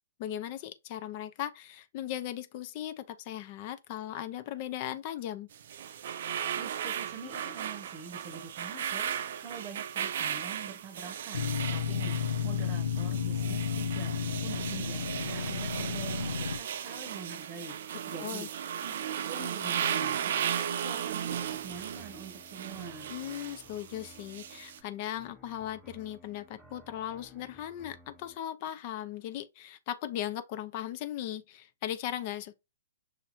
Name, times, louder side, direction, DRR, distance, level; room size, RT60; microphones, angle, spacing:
voice 1, 0.2-5.5 18.2-18.5 23.1-32.5, left 11 dB, 40° left, 0.6 m, -38 dB
sound 1, 5.5-24.8, right 9 dB, 60° right, 0.5 m, -36 dB
voice 2, 6.6-14.1 14.4-18.5 18.8-19.0 19.3-20.4 20.7-23.1, right 5 dB, 30° right, 0.9 m, -45 dB
sound 2, 11.3-16.6, left 7 dB, 85° left, 0.7 m, -32 dB
sound 3, 20.8-28.4, equal, ahead, 1.3 m, -57 dB
6.3 x 2.8 x 2.5 m
hypercardioid pair, 130°, 0 cm